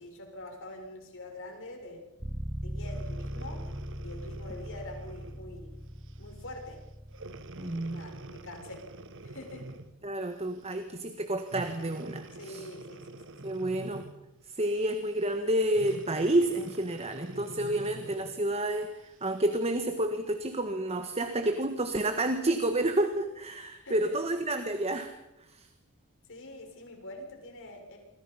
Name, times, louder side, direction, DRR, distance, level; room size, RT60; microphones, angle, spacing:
voice 1, 0.0-2.0 2.6-3.6 4.0-5.8 6.2-6.8 7.6-8.8 9.2-9.7 12.4-13.4 23.9-24.2 26.3-28.0, left 1 dB, 60° left, 2 dB, 7.0 m, -45 dB
sound 1, 2.2-9.9, equal, 10° right, 0.8 m, -41 dB
Breathing, 2.8-5.5 6.1-6.3 7.1-10.0 11.4-14.3 15.7-18.4 19.1-19.2, right 2 dB, 60° right, 1.5 m, -46 dB
voice 2, 7.6-8.0 10.0-12.7 13.4-14.1 14.6-25.1 25.5-25.7, right 1 dB, 30° right, 8 dB, 1.5 m, -30 dB
28.0 x 25.0 x 5.7 m, 0.89 s
head